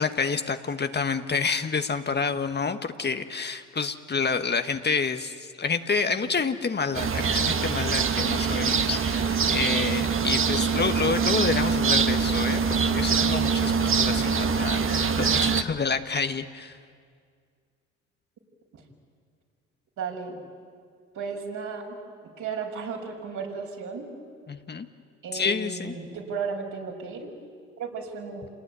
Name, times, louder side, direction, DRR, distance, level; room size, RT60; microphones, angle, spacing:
voice 1, 0.0-16.8 24.5-24.9 25.3-25.9, left 5 dB, 30° left, 8 dB, 1.3 m, -28 dB
sound 1, 6.9-15.6, right 5 dB, 35° right, 1.6 m, -24 dB
voice 2, 20.0-20.4 21.1-22.0 22.4-24.1 25.2-27.3 27.8-28.4, right 5 dB, 60° right, 1 dB, 6.2 m, -34 dB
28.0 x 19.0 x 9.7 m, 2.1 s
hypercardioid pair, 65°, 35 cm